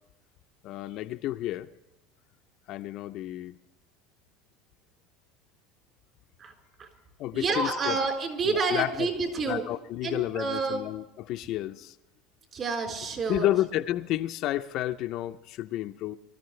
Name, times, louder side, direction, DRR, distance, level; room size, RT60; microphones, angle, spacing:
voice 1, 0.6-1.7 2.7-3.6 7.2-8.0 8.4-9.1 9.5-11.9 13.3-16.2, left 14 dB, 55° left, 0.6 m, -31 dB
voice 2, 7.3-9.6 10.0-10.8 12.5-13.5, right 4 dB, 35° right, 4.0 m, -29 dB
23.5 x 13.5 x 3.2 m
supercardioid pair, 130°, 0 cm